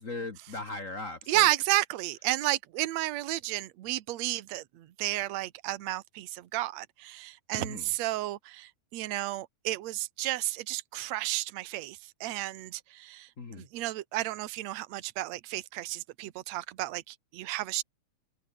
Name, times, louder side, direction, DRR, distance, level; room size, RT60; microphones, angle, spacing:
voice 1, 0.0-1.5 7.6-7.9 13.4-13.6, left 3 dB, 40° left, 1.1 m, -38 dB
voice 2, 1.3-13.3 13.6-17.8, right 16 dB, 65° right, 2.0 m, -32 dB
omnidirectional pair, 4.1 m